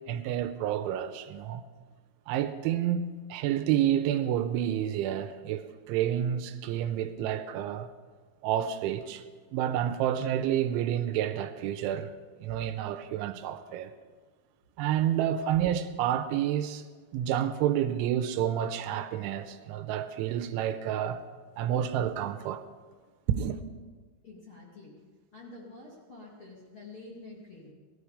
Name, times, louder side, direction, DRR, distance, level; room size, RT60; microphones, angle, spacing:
voice 1, 0.1-1.6 2.3-7.9 8.4-9.2 9.5-12.1 12.4-13.9 14.8-16.8 17.1-21.2 21.6-22.6 23.3-23.6, right 10 dB, 85° right, 3.1 m, -29 dB
voice 2, 24.2-24.9 25.3-27.7, left 2 dB, 35° left, 2.4 m, -48 dB
17.5 x 13.0 x 5.0 m
omnidirectional pair, 5.4 m